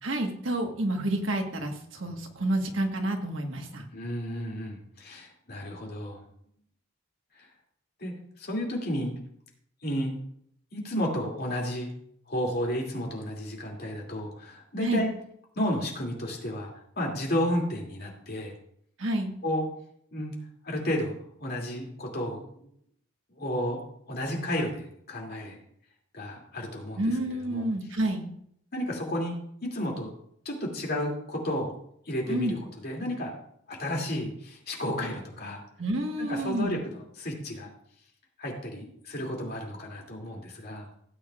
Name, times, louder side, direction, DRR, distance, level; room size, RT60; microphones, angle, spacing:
voice 1, 0.0-3.8 14.8-15.0 19.0-19.3 27.0-28.3 32.3-32.6 35.8-36.8, right 1 dB, 80° right, 3 dB, 1.5 m, -29 dB
voice 2, 3.9-6.2 7.3-7.5 8.0-9.1 9.8-10.1 10.7-11.9 12.3-15.1 15.6-18.5 19.4-19.7 20.1-20.3 20.6-21.1 21.4-22.7 23.3-23.8 24.1-25.6 26.1-27.0 27.5-27.7 28.7-30.1 30.4-31.7 32.1-32.6 32.8-33.3 33.7-35.6 36.3-37.7 38.4-40.9, equal, 50° left, -1 dB, 2.6 m, -32 dB
16.5 x 8.5 x 2.4 m, 0.69 s
head